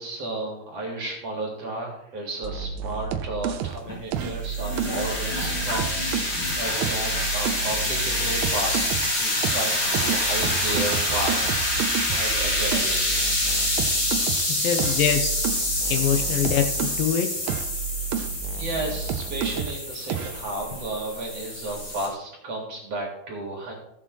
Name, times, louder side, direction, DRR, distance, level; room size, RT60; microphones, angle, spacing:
voice 1, 0.0-11.6 12.2-13.0 18.5-23.7, right 2 dB, 45° right, -1 dB, 2.6 m, -33 dB
sound 1, 2.4-6.4 6.8-9.1 9.4-17.1 17.4-19.8 20.1-20.4, right 8 dB, 80° right, 2.0 m, -31 dB
sound 2, 3.9-22.1, left 1 dB, 35° left, 4.5 m, -27 dB
voice 2, 14.5-15.3 15.8-17.4, left 8 dB, 75° left, 5 dB, 2.4 m, -24 dB
16.0 x 7.4 x 3.1 m, 0.80 s
omnidirectional pair, 4.5 m